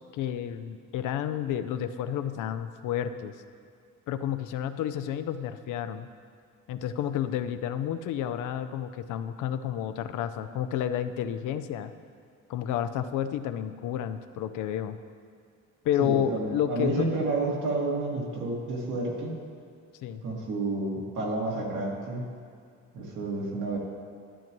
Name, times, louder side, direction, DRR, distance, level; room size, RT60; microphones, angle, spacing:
voice 1, 0.1-3.3 4.1-6.1 6.7-11.9 12.5-15.0 15.8-17.1 20.0-20.2, left 10 dB, 85° left, 10 dB, 0.6 m, -30 dB
voice 2, 16.0-19.3 20.2-22.2 22.9-23.8, right 2 dB, 85° right, -4 dB, 2.2 m, -30 dB
12.5 x 9.2 x 3.0 m, 2.3 s
cardioid pair, 90°, 30 cm